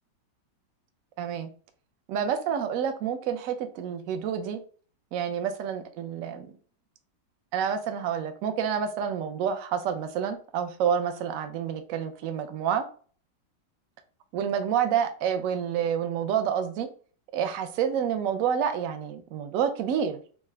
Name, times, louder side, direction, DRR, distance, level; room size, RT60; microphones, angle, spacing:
voice 1, 1.2-1.5 2.1-4.6 5.1-6.5 7.5-12.8 14.3-16.9 17.3-20.2, right 8 dB, 70° right, 8 dB, 0.8 m, -28 dB
4.7 x 2.1 x 3.2 m, 0.42 s
omnidirectional pair, 1.9 m